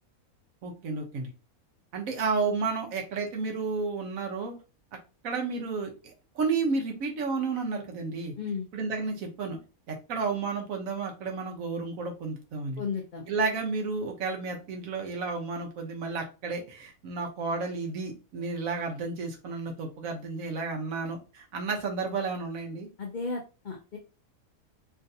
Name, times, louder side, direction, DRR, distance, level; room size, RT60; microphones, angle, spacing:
voice 1, 0.6-1.3 1.9-4.5 5.2-5.9 6.3-8.3 8.7-9.6 9.9-12.8 13.3-22.9, right 4 dB, 70° right, 2 dB, 1.2 m, -32 dB
voice 2, 12.8-13.2 23.0-24.0, left 5 dB, 65° left, 0 dB, 0.4 m, -34 dB
3.5 x 2.5 x 2.6 m, 0.31 s
omnidirectional pair, 1.5 m